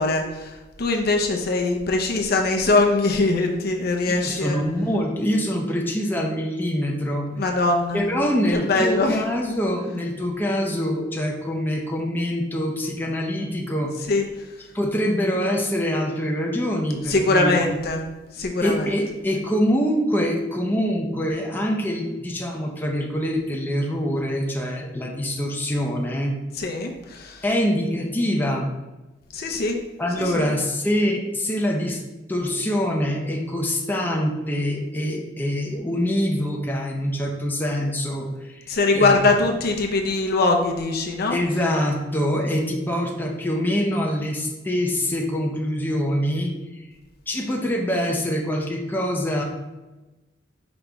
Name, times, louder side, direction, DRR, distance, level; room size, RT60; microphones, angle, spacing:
voice 1, 0.0-4.6 7.4-8.0 8.5-9.2 14.1-14.3 17.1-18.0 18.3-18.9 26.6-27.4 29.3-29.8 30.2-30.5 38.7-41.4, left 3 dB, 55° left, 2 dB, 0.6 m, -22 dB
voice 2, 4.1-7.3 7.9-13.9 14.7-17.6 18.6-26.4 27.4-28.7 30.0-32.0 32.3-39.2 41.3-46.5 47.3-49.4, equal, 10° left, 0 dB, 0.5 m, -24 dB
5.1 x 3.0 x 3.4 m, 1.1 s
head